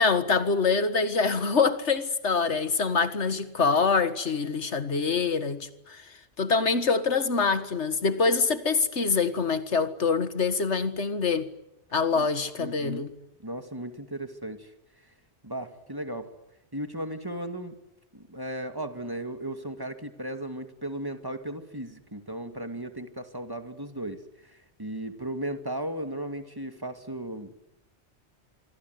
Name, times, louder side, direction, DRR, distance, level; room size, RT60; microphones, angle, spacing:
voice 1, 0.0-11.5 11.9-13.1, left 4 dB, 80° left, 2.0 m, -25 dB
voice 2, 12.6-13.1 13.4-14.7 15.4-16.3 16.7-17.8 18.1-27.5, right 1 dB, 20° right, 2.3 m, -36 dB
26.5 x 23.5 x 9.6 m
omnidirectional pair, 1.1 m